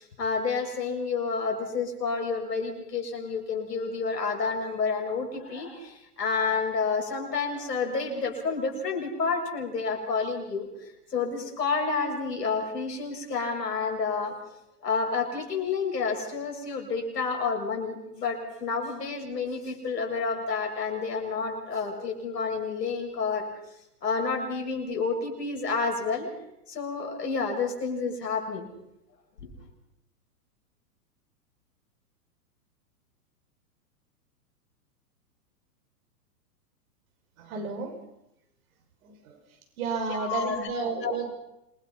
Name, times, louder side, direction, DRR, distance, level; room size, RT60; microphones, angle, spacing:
voice 1, 0.0-10.7 11.1-14.4 14.8-23.5 24.0-26.3 26.7-28.7 29.4-29.5 40.1-40.6 41.0-41.2, left 4 dB, 90° left, 2 dB, 6.9 m, -29 dB
voice 2, 37.4-37.9 39.0-39.4 39.8-41.3, right 5 dB, 60° right, 5 dB, 5.9 m, -32 dB
27.0 x 22.5 x 5.7 m, 0.86 s
hypercardioid pair, 125°, 47 cm